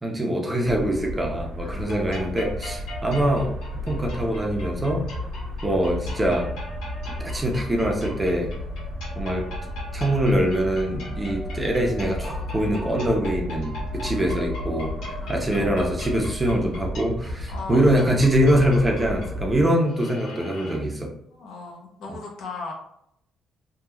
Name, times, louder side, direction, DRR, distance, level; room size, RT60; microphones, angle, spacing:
voice 1, 0.0-3.5 3.9-5.1 5.6-6.5 7.2-8.5 9.2-9.5 9.9-21.1 22.1-22.2, right 1 dB, 20° right, 0 dB, 0.6 m, -23 dB
sound 1, 0.6-19.6, equal, 85° right, 0.7 m, -33 dB
sound 2, 1.8-20.8, left 1 dB, 90° left, 1.1 m, -40 dB
voice 2, 15.2-15.7 17.5-17.9 21.3-22.7, left 3 dB, 70° left, 0 dB, 0.7 m, -37 dB
2.8 x 2.3 x 2.3 m, 0.75 s
cardioid pair, 90°, 0 cm